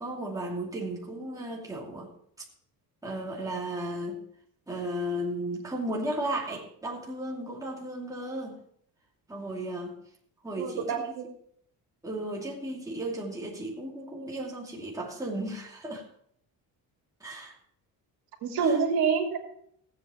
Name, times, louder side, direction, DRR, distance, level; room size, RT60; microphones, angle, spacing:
voice 1, 0.0-2.1 3.0-4.2 4.7-8.6 9.3-9.9 10.4-10.9 12.0-16.0 17.2-17.5 18.7-18.8, right 1 dB, 10° right, -2 dB, 2.5 m, -34 dB
voice 2, 10.6-11.3 18.4-19.4, right 5 dB, 80° right, 3 dB, 2.5 m, -27 dB
16.0 x 8.3 x 4.4 m, 0.67 s
cardioid pair, 150°, 36 cm